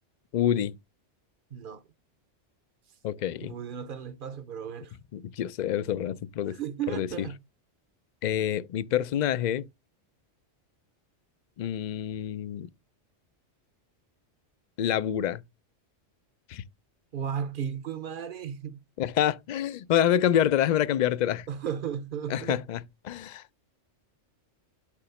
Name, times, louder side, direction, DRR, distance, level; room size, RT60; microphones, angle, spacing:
voice 1, 0.3-0.7 3.0-3.5 5.1-6.6 6.9-7.1 8.2-9.7 11.6-12.7 14.8-15.4 16.5-16.6 19.0-21.5 22.3-22.8 23.0-23.4, left 10 dB, 60° left, 0.4 m, -27 dB
voice 2, 1.5-1.8 3.4-4.9 6.5-7.4 17.1-18.8 21.5-22.7, right 8 dB, 50° right, 0.8 m, -35 dB
8.4 x 2.9 x 5.7 m
omnidirectional pair, 1.2 m